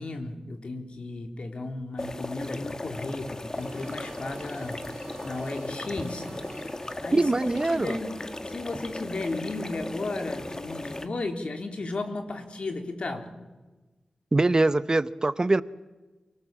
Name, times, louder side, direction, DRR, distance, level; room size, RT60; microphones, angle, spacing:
voice 1, 0.0-4.8 5.2-6.3 7.0-7.3 7.7-13.3, left 2 dB, 60° left, 3.5 m, -34 dB
sound 1, 2.0-11.1, left 2 dB, 30° left, 1.6 m, -37 dB
sound 2, 3.5-8.0, right 4 dB, 80° right, 3.5 m, -49 dB
voice 2, 7.1-8.0 14.3-15.6, right 2 dB, 35° right, 0.8 m, -23 dB
28.0 x 19.0 x 7.6 m
cardioid pair, 55°, 2 cm